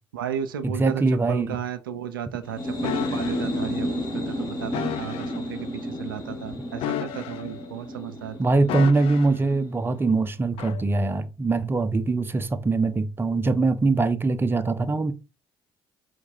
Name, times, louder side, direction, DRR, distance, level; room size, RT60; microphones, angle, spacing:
voice 1, 0.1-1.0 1.3-8.4, right 9 dB, 90° right, 0.4 m, -34 dB
voice 2, 0.6-1.6 8.4-15.1, right 3 dB, 20° right, 0.6 m, -22 dB
sound 1, 2.4-9.9, equal, 40° left, 1.9 m, -32 dB
sound 2, 2.8-3.5 4.7-5.4 6.8-7.7 8.7-9.4 10.6-10.8, left 10 dB, 60° left, 0.4 m, -32 dB
4.7 x 2.2 x 4.2 m
hypercardioid pair, 50°, 11 cm